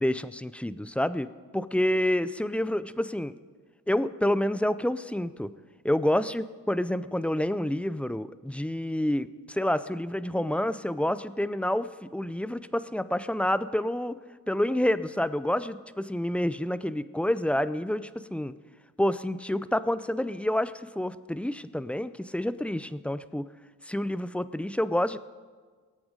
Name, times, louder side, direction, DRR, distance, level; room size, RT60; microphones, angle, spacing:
voice 1, 0.0-3.3 3.9-5.5 5.8-14.2 14.5-18.5 19.0-23.5 23.8-25.2, left 1 dB, 5° left, 15 dB, 0.4 m, -28 dB
20.5 x 8.7 x 5.1 m, 1.5 s
cardioid pair, 85°, 35 cm